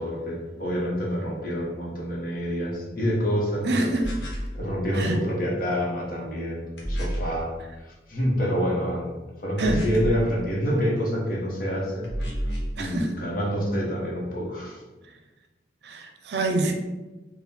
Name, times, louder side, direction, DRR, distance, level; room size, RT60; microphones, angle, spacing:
voice 1, 0.0-3.9 4.5-7.5 7.8-9.1 9.4-12.1 12.8-14.8, equal, 50° left, -3 dB, 1.0 m, -27 dB
voice 2, 3.6-4.2 5.0-5.2 9.6-9.9 12.8-13.1 15.8-16.7, right 2 dB, 70° right, 5 dB, 0.5 m, -26 dB
sound 1, 4.0-4.5 6.8-7.4 9.6-10.2 12.0-12.8, equal, 90° left, 1.1 m, -30 dB
3.6 x 2.2 x 4.2 m, 1.1 s
head